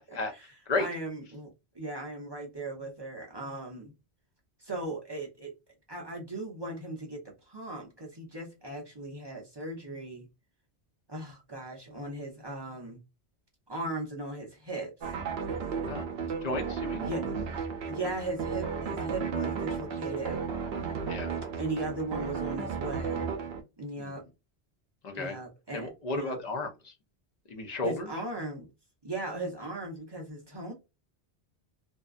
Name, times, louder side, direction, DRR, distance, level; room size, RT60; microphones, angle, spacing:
voice 1, 0.1-0.5 0.8-3.9 4.6-5.5 5.9-10.3 11.1-13.0 13.7-14.9 17.1-17.2 17.9-20.4 21.6-23.3 23.8-24.2 25.1-26.4 27.8-28.7 29.0-30.7, right 2 dB, 30° right, 0.5 m, -38 dB
sound 1, 15.0-23.6, right 6 dB, 70° right, 0.8 m, -34 dB
voice 2, 16.4-17.0 21.1-21.3 24.0-24.2 25.0-25.4 25.7-26.9 27.5-28.1, left 2 dB, 45° left, 0.7 m, -33 dB
2.6 x 2.2 x 2.3 m
omnidirectional pair, 1.1 m